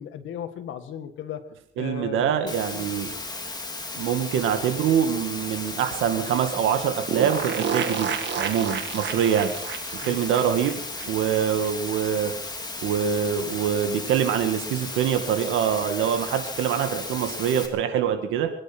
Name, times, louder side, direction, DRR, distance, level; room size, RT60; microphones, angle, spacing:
voice 1, 0.0-1.4 1.8-2.9 10.0-10.2, left 8 dB, 80° left, 9 dB, 1.8 m, -36 dB
voice 2, 1.8-3.1 3.9-9.5 10.0-12.3 12.8-18.5, right 8 dB, 90° right, 6 dB, 2.1 m, -24 dB
Water, 2.5-17.7, left 2 dB, 20° left, 3.3 m, -35 dB
sound 1, 7.1-11.7 12.0-12.1 12.3-12.4, right 7 dB, 60° right, 1.8 m, -30 dB
23.5 x 10.0 x 6.1 m, 0.72 s
cardioid pair, 90°, 20 cm